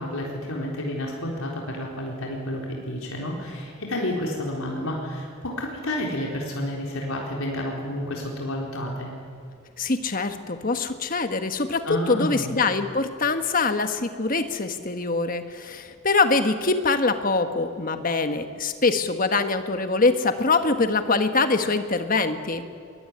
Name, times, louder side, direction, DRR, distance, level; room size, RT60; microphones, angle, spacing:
voice 1, 0.0-9.1 11.8-12.5, left 1 dB, 85° left, -2 dB, 4.1 m, -30 dB
voice 2, 9.8-22.6, left 3 dB, 40° left, 8 dB, 1.4 m, -24 dB
22.5 x 21.5 x 9.7 m, 2.2 s
head